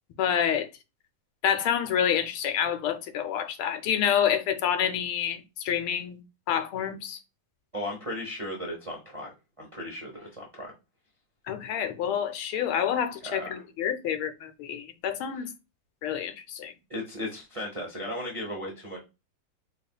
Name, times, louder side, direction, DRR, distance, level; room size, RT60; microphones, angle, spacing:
voice 1, 0.2-0.7 1.4-7.2 11.5-15.5 16.0-16.7, left 9 dB, 85° left, 1.5 m, -28 dB
voice 2, 7.7-10.7 13.2-13.6 16.9-19.0, left 1 dB, 60° right, 0.3 m, -36 dB
4.1 x 3.3 x 2.3 m
omnidirectional pair, 2.2 m